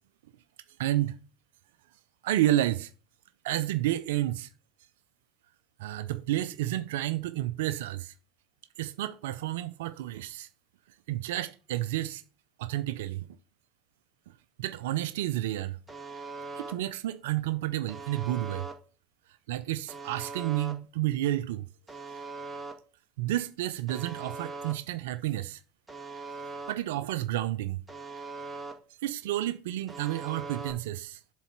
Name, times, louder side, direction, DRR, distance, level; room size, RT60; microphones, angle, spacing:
voice 1, 0.8-1.2 2.2-2.9 3.4-4.5 5.8-8.1 8.8-10.5 11.1-12.2 12.6-13.3 14.6-15.8 16.6-18.7 19.5-21.7 23.2-25.6 26.7-27.8 29.0-31.2, right 14 dB, 80° right, 0.4 m, -30 dB
Alarm, 15.9-16.7 17.9-18.7 19.9-20.7 21.9-22.7 23.9-24.7 25.9-26.7 27.9-28.7 29.9-30.7, right 4 dB, 15° right, 1.9 m, -40 dB
7.3 x 4.0 x 5.9 m
hypercardioid pair, 80°, 0 cm